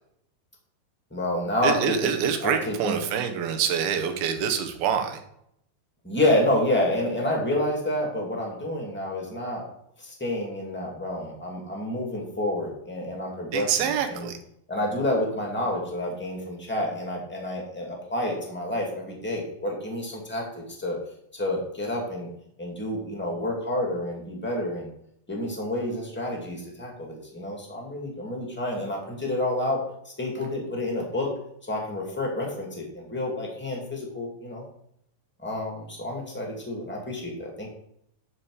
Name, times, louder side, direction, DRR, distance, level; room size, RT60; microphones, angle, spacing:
voice 1, 1.1-2.1 2.4-3.0 6.0-9.6 10.0-14.3 14.7-21.0 21.3-22.3 22.6-24.9 25.3-31.3 31.6-34.6 35.4-37.7, left 1 dB, 5° left, -1 dB, 1.0 m, -29 dB
voice 2, 1.6-5.2 13.5-14.4, right 7 dB, 85° right, 7 dB, 2.9 m, -26 dB
11.5 x 4.9 x 4.8 m, 0.74 s
omnidirectional pair, 4.2 m